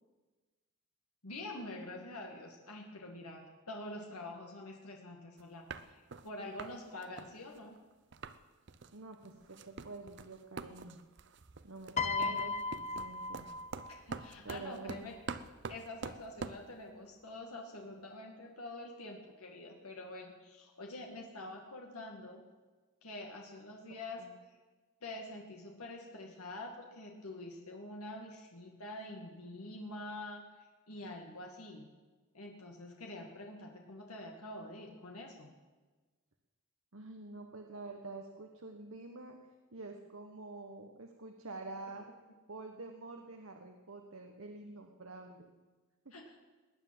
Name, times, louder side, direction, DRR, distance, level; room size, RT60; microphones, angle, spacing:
voice 1, 1.2-7.7 12.2-12.4 13.9-15.1 15.7-22.4 23.0-24.6 25.0-30.4 30.9-31.9 32.3-35.5 46.1-46.4, left 2 dB, 85° left, 1 dB, 2.2 m, -46 dB
sound 1, 5.4-5.5 5.7-6.3 6.6-6.8 7.0-8.4 8.7-8.9 9.3-16.7, right 4 dB, 50° right, 0.7 m, -45 dB
voice 2, 8.9-11.0 11.6-13.5 14.4-15.1 23.9-24.3 36.9-39.4 39.7-42.1 42.5-45.5 46.0-46.2, right 3 dB, 70° right, 3 dB, 1.4 m, -47 dB
Piano, 12.0-14.3 15.4-15.6, left 4 dB, 30° left, 0.6 m, -36 dB
19.5 x 9.5 x 7.8 m, 1.3 s
head